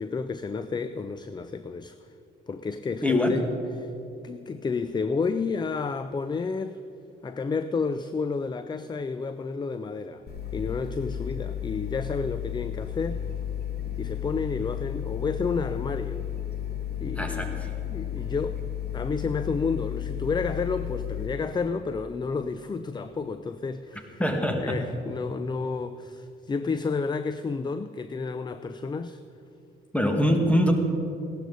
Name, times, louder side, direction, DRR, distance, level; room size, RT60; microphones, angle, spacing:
voice 1, 0.0-2.1 2.5-3.5 3.8-3.9 4.2-6.8 7.2-10.2 10.5-13.2 14.0-16.2 17.0-18.6 18.9-24.2 24.6-29.2, left 4 dB, 20° left, 12 dB, 0.4 m, -31 dB
voice 2, 3.0-3.4 17.2-17.7 24.2-24.8 29.9-30.7, left 1 dB, 5° left, 3 dB, 1.8 m, -23 dB
sound 1, 10.3-21.3, left 10 dB, 55° left, 1.9 m, -33 dB
16.5 x 12.0 x 4.0 m, 2.6 s
cardioid pair, 90°, 20 cm